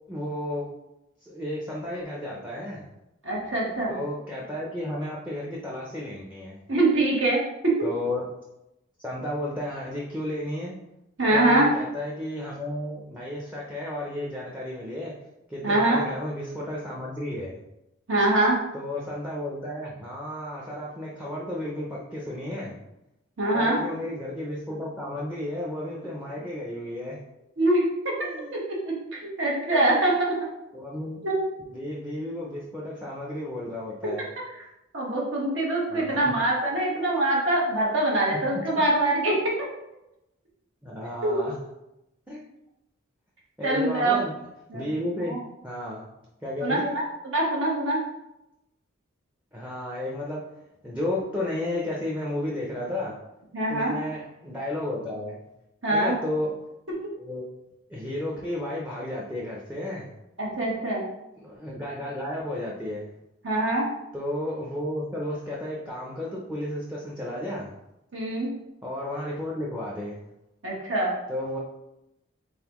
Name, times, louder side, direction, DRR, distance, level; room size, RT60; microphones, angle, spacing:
voice 1, 0.1-0.7 1.2-2.8 3.9-6.6 7.8-8.3 9.0-10.7 11.3-15.1 15.5-17.6 18.7-22.8 23.5-27.2 28.2-28.5 30.7-31.2 31.7-34.2 35.9-36.3 40.8-41.5 42.3-42.4 43.6-44.4 44.7-45.4 45.6-46.1 46.4-47.0 49.5-50.4 50.8-53.2 53.7-55.4 55.9-56.5 57.2-57.4 57.9-60.1 61.4-63.1 64.1-67.7 68.8-70.2 71.3-71.6, left 1 dB, 5° right, -5 dB, 0.5 m, -33 dB
voice 2, 3.2-3.9 6.7-7.7 11.2-11.7 15.6-16.0 18.1-18.6 23.4-23.8 27.6-28.1 28.5-30.4 31.2-31.4 34.9-39.5 41.2-41.4 43.6-44.2 44.7-44.8 45.2-45.4 46.6-48.0 53.5-53.9 55.8-56.2 60.4-61.0 63.4-63.9 68.1-68.5 70.6-71.1, right 2 dB, 70° right, -3 dB, 1.3 m, -24 dB
3.9 x 3.5 x 3.0 m, 0.88 s
head